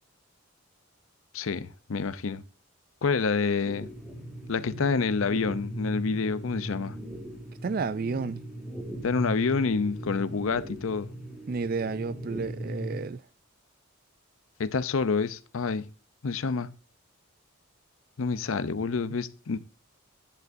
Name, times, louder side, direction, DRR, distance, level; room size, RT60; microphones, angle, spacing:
voice 1, 1.3-2.4 3.0-3.9 4.5-7.0 9.0-11.1 14.6-15.9 16.2-16.7 18.2-19.6, left 4 dB, 75° left, 0.6 m, -28 dB
sound 1, 3.7-13.0, equal, 5° right, 1.8 m, -38 dB
voice 2, 7.6-8.4 11.5-13.2, right 4 dB, 45° right, 0.3 m, -31 dB
10.5 x 10.0 x 2.6 m
head